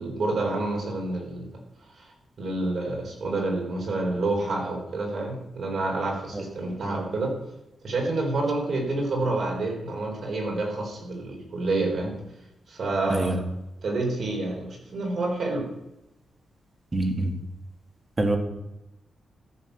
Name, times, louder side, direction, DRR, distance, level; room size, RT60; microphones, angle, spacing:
voice 1, 0.0-1.6 1.9-7.3 7.8-12.1 12.7-13.4 13.8-15.7, right 2 dB, 55° right, 1 dB, 4.0 m, -28 dB
voice 2, 16.9-17.3 18.2-18.4, right 2 dB, 20° right, 4 dB, 1.9 m, -24 dB
14.0 x 7.0 x 6.7 m, 0.91 s
wide cardioid pair, 130°, 0 cm